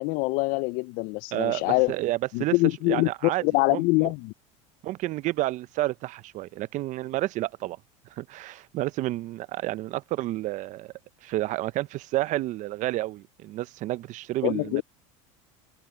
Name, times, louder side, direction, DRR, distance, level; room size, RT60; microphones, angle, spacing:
voice 1, 0.0-1.9 2.3-4.3 14.4-14.8, left 26 dB, 60° left, 0.5 m, -24 dB
voice 2, 1.3-2.5 2.9-3.4 3.7-4.1 4.8-7.8 8.1-10.9 11.2-14.8, right 16 dB, 50° right, 0.7 m, -30 dB
supercardioid pair, 110°, 16 cm